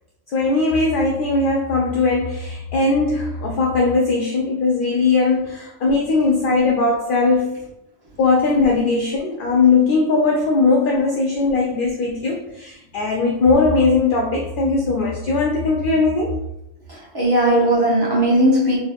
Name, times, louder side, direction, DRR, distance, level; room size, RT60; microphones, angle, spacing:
voice 1, 0.3-7.6 8.2-16.4, left 3 dB, 65° left, -1 dB, 0.5 m, -19 dB
voice 2, 16.9-18.8, right 1 dB, 25° right, -5 dB, 0.7 m, -17 dB
4.0 x 2.7 x 2.4 m, 0.86 s
omnidirectional pair, 1.3 m